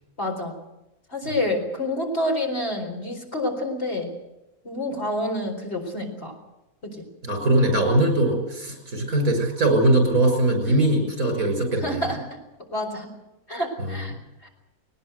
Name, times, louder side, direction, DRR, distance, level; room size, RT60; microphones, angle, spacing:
voice 1, 0.2-0.5 1.1-4.1 4.6-6.3 6.8-7.1 11.7-12.2 12.7-13.1 13.5-14.1 14.4-14.5, left 1 dB, 45° left, 2 dB, 4.6 m, -28 dB
voice 2, 7.2-12.0 13.9-14.0, right 1 dB, 70° right, 5 dB, 6.3 m, -21 dB
20.0 x 19.5 x 8.0 m, 0.95 s
omnidirectional pair, 1.5 m